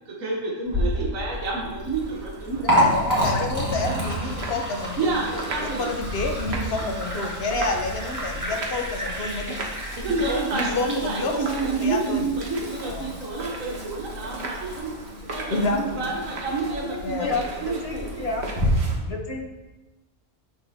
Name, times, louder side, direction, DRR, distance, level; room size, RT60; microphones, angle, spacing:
voice 1, 0.0-2.6 5.0-5.9 6.7-7.3 9.9-14.9 15.3-18.3, right 3 dB, 85° right, -2 dB, 1.5 m, -29 dB
Liquid, 0.6-18.7, equal, 15° right, 1.9 m, -30 dB
sound 1, 1.9-19.0, right 2 dB, 55° right, 1.3 m, -38 dB
voice 2, 2.6-5.1 5.6-9.6 10.5-12.3 12.8-13.1 15.5-16.1 17.0-17.3, left 2 dB, 55° left, 2 dB, 1.1 m, -29 dB
voice 3, 16.8-18.4 19.1-19.4, left 3 dB, 30° left, -1 dB, 1.2 m, -31 dB
8.4 x 6.5 x 2.8 m, 1.1 s
omnidirectional pair, 1.3 m